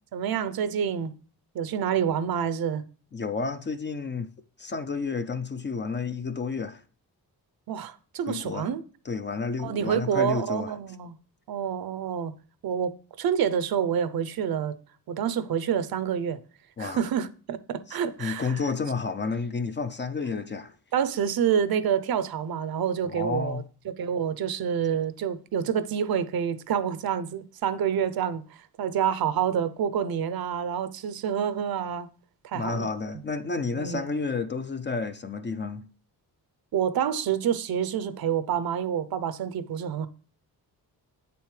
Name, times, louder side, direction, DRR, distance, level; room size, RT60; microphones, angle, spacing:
voice 1, 0.1-1.1 1.5-2.8 7.7-8.8 9.6-11.2 11.5-12.3 12.6-14.7 15.1-16.4 16.8-18.6 20.9-32.1 32.4-32.9 33.8-34.0 36.7-40.1, right 8 dB, 60° right, 0.7 m, -28 dB
voice 2, 3.1-4.3 4.6-6.8 8.3-8.7 9.1-10.7 16.8-17.0 17.9-20.8 23.1-23.6 32.5-35.9, left 4 dB, 30° left, 0.5 m, -31 dB
8.2 x 6.9 x 3.2 m
cardioid pair, 125°, 40 cm